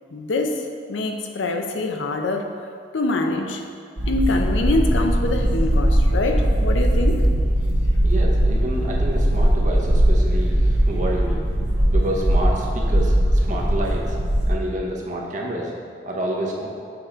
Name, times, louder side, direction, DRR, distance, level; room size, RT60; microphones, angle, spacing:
voice 1, 0.1-0.6 0.9-2.5 2.9-3.6 4.1-7.2, left 2 dB, 85° left, 4 dB, 0.6 m, -24 dB
sound 1, 4.0-14.5, right 1 dB, 75° right, 1.3 m, -19 dB
voice 2, 8.0-11.4 11.9-14.2 14.5-15.7 16.0-16.7, right 1 dB, 40° right, -2 dB, 0.9 m, -28 dB
6.8 x 3.8 x 4.3 m, 2.2 s
head